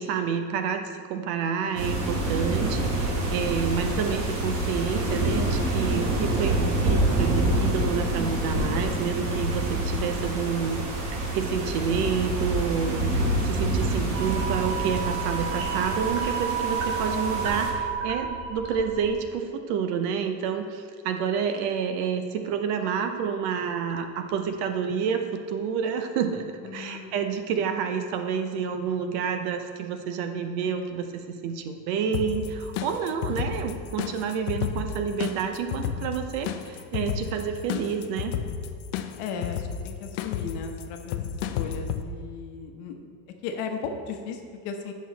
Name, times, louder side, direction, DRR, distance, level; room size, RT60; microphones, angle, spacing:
voice 1, 0.0-26.5 26.7-38.3, right 6 dB, 55° right, 6 dB, 0.7 m, -29 dB
sound 1, 1.8-17.7, right 1 dB, 35° right, 1.2 m, -27 dB
sound 2, 14.1-19.2, right 6 dB, 70° right, 1.8 m, -31 dB
voice 2, 26.6-27.7 39.2-41.2 41.5-43.1 43.4-44.9, left 5 dB, 55° left, 4 dB, 1.0 m, -36 dB
sound 3, 32.1-42.0, left 8 dB, 85° left, 0.7 m, -32 dB
8.3 x 6.2 x 4.0 m, 2.1 s
cardioid pair, 175°, 41 cm